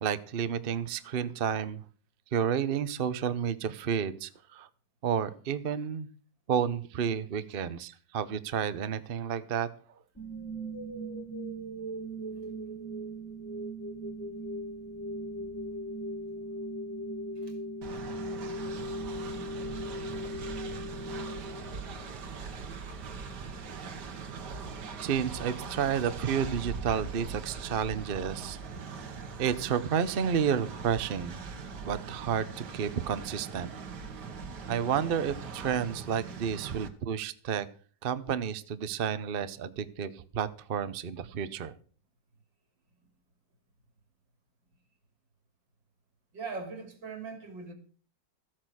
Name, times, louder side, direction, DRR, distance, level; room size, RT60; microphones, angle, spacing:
voice 1, 0.0-1.8 2.3-4.7 5.0-6.1 6.5-9.7 25.0-28.6 29.4-31.3 31.8-32.5 32.7-33.7 34.7-37.7 38.0-41.7, right 8 dB, 45° right, 0.7 m, -31 dB
sound 1, 10.2-22.2, right 1 dB, 10° left, 1.5 m, -38 dB
Train, 17.8-36.9, right 5 dB, 65° right, 1.9 m, -41 dB
voice 2, 46.3-47.7, right 4 dB, 85° right, 3.5 m, -40 dB
14.0 x 8.7 x 6.3 m
omnidirectional pair, 2.0 m